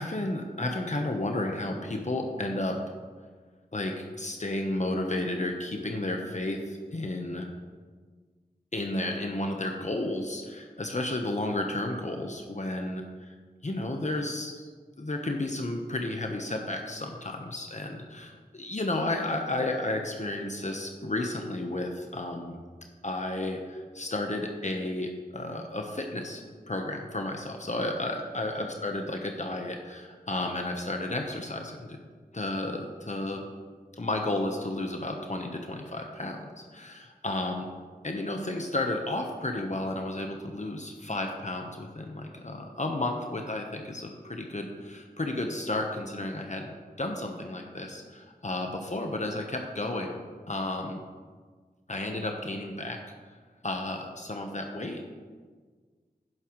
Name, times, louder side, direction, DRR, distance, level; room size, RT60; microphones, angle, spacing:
voice 1, 0.0-2.8 3.7-7.5 8.7-13.3 13.6-14.6 15.0-22.6 23.0-32.0 32.3-33.4 34.0-37.7 38.0-50.2 50.5-51.0 51.9-53.0 53.6-55.1, left 2 dB, 45° left, 2 dB, 1.1 m, -32 dB
11.0 x 11.0 x 3.2 m, 1.5 s
wide cardioid pair, 60°, 16 cm